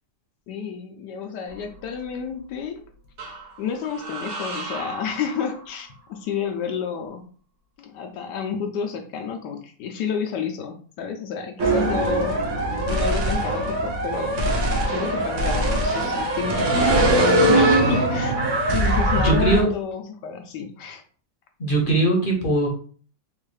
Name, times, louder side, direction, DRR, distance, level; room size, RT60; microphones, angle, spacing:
voice 1, 0.5-2.8 3.6-7.3 7.8-12.4 12.9-14.5 14.9-18.3 18.7-21.0, left 6 dB, 80° left, 4 dB, 1.2 m, -30 dB
sound 1, 1.5-2.3 3.2-6.1, right 3 dB, 75° right, 1.9 m, -37 dB
sound 2, 11.6-19.6, right 1 dB, 60° right, 0.9 m, -21 dB
voice 2, 19.1-19.7 21.6-22.7, right 2 dB, 40° left, 0 dB, 0.8 m, -20 dB
4.5 x 2.4 x 3.1 m, 0.43 s
omnidirectional pair, 1.8 m